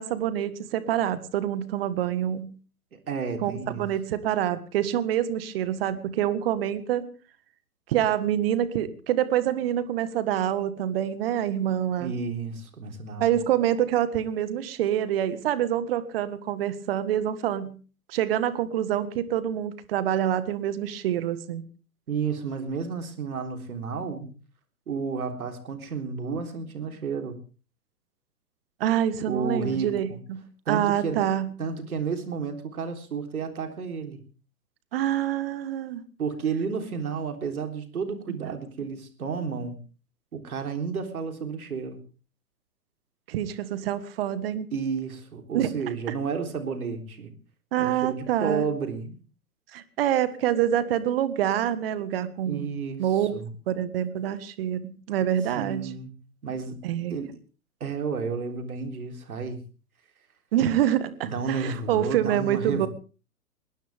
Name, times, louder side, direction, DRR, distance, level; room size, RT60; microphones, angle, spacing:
voice 1, 0.0-2.5 3.4-7.1 7.9-12.1 13.2-17.7 18.1-21.6 28.8-31.5 34.9-36.0 38.3-38.4 43.3-44.7 45.5-45.7 46.1-46.2 47.7-48.6 49.7-52.7 53.0-53.3 53.7-55.9 56.8-57.1 60.5-62.9, right 11 dB, 40° right, 14 dB, 1.6 m, -26 dB
voice 2, 3.1-3.9 12.0-13.3 22.1-24.3 24.9-27.4 29.3-30.2 30.7-31.3 31.6-34.2 36.2-39.8 40.3-42.0 44.7-47.3 47.8-49.2 52.5-53.0 53.3-53.5 55.6-56.1 56.4-56.8 57.1-57.4 57.8-59.6 61.2-62.9, right 5 dB, 65° right, 6 dB, 3.7 m, -31 dB
21.0 x 18.5 x 3.5 m, 0.37 s
figure-of-eight pair, 120°, 47 cm